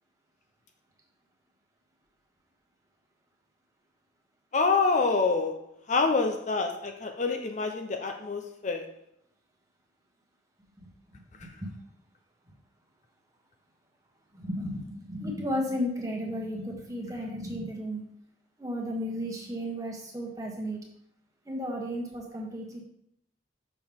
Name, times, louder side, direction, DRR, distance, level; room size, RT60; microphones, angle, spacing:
voice 1, 4.5-5.6 5.9-8.9, left 4 dB, 40° left, 5 dB, 0.6 m, -26 dB
voice 2, 14.3-18.0 18.6-20.8 21.4-22.8, equal, 20° right, 0 dB, 1.3 m, -34 dB
6.8 x 6.0 x 3.6 m, 0.74 s
head